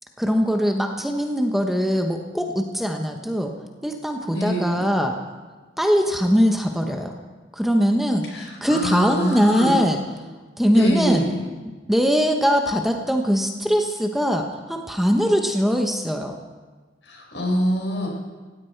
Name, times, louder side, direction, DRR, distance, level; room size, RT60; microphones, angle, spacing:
voice 1, 0.2-3.5 3.8-5.2 5.8-7.1 7.5-10.0 10.6-11.3 11.9-16.4, equal, ahead, 3 dB, 1.0 m, -21 dB
voice 2, 4.3-4.9 8.3-9.8 10.7-11.4 17.0-18.1, equal, 80° left, -1 dB, 5.1 m, -25 dB
17.0 x 16.0 x 4.6 m, 1.3 s
head